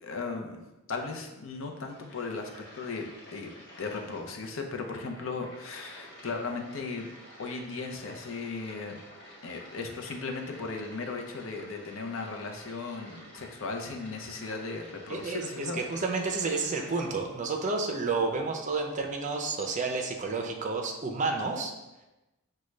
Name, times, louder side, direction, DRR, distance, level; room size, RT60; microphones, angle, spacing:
voice 1, 0.0-7.1 7.4-9.0 9.4-16.0, left 4 dB, 70° left, 3 dB, 0.6 m, -37 dB
sound 1, 1.6-17.1, equal, 50° left, 1.5 m, -51 dB
voice 2, 15.1-21.7, right 3 dB, 35° right, 3 dB, 0.5 m, -30 dB
6.1 x 2.2 x 3.2 m, 1.0 s
head